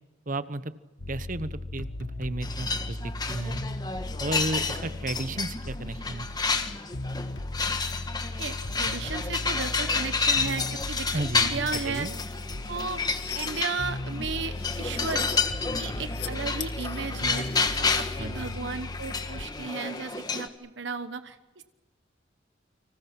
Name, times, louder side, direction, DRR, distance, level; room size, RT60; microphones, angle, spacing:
voice 1, 0.3-0.7 1.1-3.7 4.2-6.3 11.1-12.1 18.2-18.6, right 2 dB, 40° right, 13 dB, 1.1 m, -33 dB
sound 1, 1.0-19.4, left 1 dB, 75° left, 1.5 m, -37 dB
sound 2, 2.4-20.5, left 4 dB, 20° left, 1.5 m, -30 dB
voice 2, 8.4-12.1 12.7-15.3 15.8-17.5 17.8-21.6, right 4 dB, 65° right, 10 dB, 1.1 m, -35 dB
sound 3, 12.6-13.7 14.4-15.5 16.0-16.3 16.6-19.2, left 10 dB, 60° left, 2.1 m, -41 dB
30.0 x 25.5 x 6.0 m, 1.1 s
head